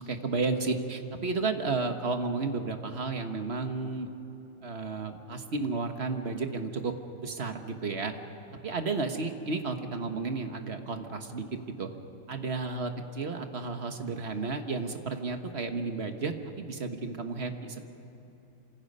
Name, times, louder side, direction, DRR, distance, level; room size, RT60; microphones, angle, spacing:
voice 1, 0.0-4.1 4.6-6.9 7.2-8.1 8.6-11.4 11.8-11.9 12.3-17.8, right 3 dB, 35° right, 6 dB, 1.3 m, -32 dB
28.0 x 26.0 x 5.5 m, 2.9 s
omnidirectional pair, 2.2 m